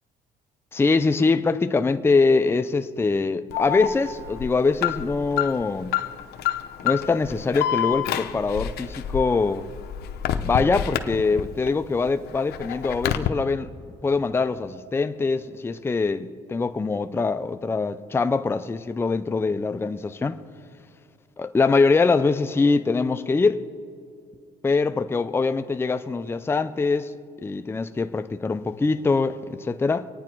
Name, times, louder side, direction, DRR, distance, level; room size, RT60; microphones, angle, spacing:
voice 1, 0.7-6.0 6.8-9.7 10.4-13.7 14.0-20.4 21.4-23.6 24.6-27.1 27.4-30.1, left 4 dB, 15° left, 0.5 m, -23 dB
Alarm, 3.5-11.7 12.1-13.3, left 10 dB, 70° left, 0.8 m, -28 dB
25.5 x 9.5 x 4.6 m
cardioid pair, 110°, 17 cm